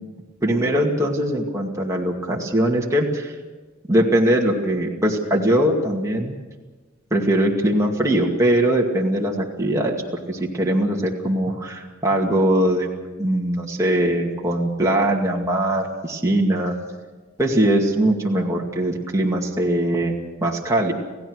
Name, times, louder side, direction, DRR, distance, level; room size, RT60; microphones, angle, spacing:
voice 1, 0.4-3.3 3.9-6.4 7.1-10.0 10.3-12.9 13.2-16.8 17.4-20.9, right 1 dB, 15° right, -2 dB, 2.3 m, -21 dB
28.5 x 16.5 x 6.5 m, 1.3 s
head